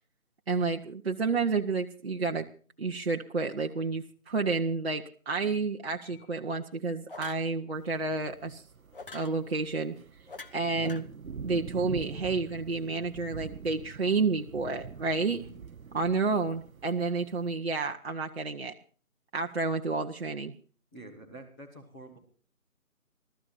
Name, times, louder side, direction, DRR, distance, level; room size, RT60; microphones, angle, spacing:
voice 1, 0.5-2.5 2.8-8.6 9.1-10.0 10.5-11.0 11.4-15.4 15.9-18.7 19.3-20.5, right 4 dB, 45° right, 1 dB, 1.0 m, -30 dB
sound 1, 6.0-6.3 7.1-7.5 8.9-9.3 10.3-11.0, left 4 dB, 40° left, 1.2 m, -44 dB
sound 2, 7.7-17.5, right 6 dB, 75° right, 0.8 m, -45 dB
voice 2, 15.2-15.5 20.9-22.2, right 2 dB, 10° left, -8 dB, 1.5 m, -47 dB
29.5 x 14.0 x 2.6 m, 0.42 s
figure-of-eight pair, 165°, 42 cm